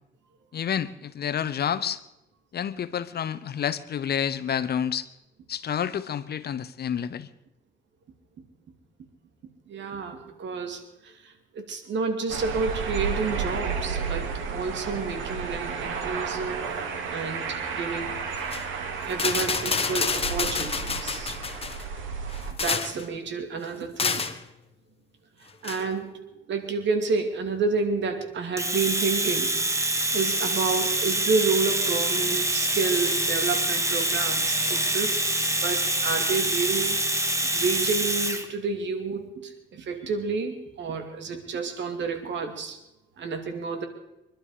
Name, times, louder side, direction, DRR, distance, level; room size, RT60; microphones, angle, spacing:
voice 1, 0.5-2.0 2.5-5.1 5.5-7.3, left 8 dB, 55° left, 14 dB, 0.9 m, -29 dB
voice 2, 9.7-16.6 17.1-18.2 19.1-21.4 22.6-24.3 25.6-26.2 26.5-29.5 29.9-35.2 35.6-37.0 37.5-42.8 43.2-43.9, right 4 dB, 65° right, 5 dB, 2.7 m, -30 dB
sound 1, 12.3-22.5, right 5 dB, 85° right, 2.3 m, -32 dB
sound 2, 18.4-18.6 19.1-21.8 22.3-23.0 24.0-24.4 25.6-25.8, left 5 dB, 30° left, 1.3 m, -28 dB
Domestic sounds home sounds, 28.6-38.5, right 1 dB, 15° right, 1.8 m, -26 dB
24.5 x 11.5 x 5.1 m, 0.90 s
cardioid pair, 90°, 20 cm